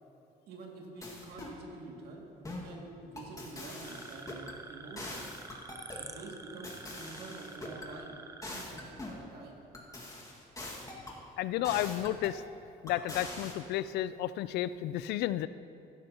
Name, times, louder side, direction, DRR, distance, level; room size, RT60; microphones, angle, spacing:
voice 1, 0.5-5.2 6.0-6.7 7.0-8.2 8.4-9.6, right 3 dB, 70° right, -1 dB, 2.4 m, -47 dB
sound 1, 1.0-1.6 2.4-2.7 3.2-4.6 5.0-6.1 6.6-7.9 8.4-9.2 9.7-11.2 11.6-12.4 12.9-13.5, left 2 dB, 20° left, 2.0 m, -43 dB
sound 2, 3.8-8.6, right 3 dB, 20° right, 0.7 m, -48 dB
voice 2, 11.4-12.4 12.8-15.5, left 13 dB, 80° left, 15 dB, 0.4 m, -32 dB
15.5 x 12.0 x 3.0 m, 2.6 s
cardioid pair, 110°, 17 cm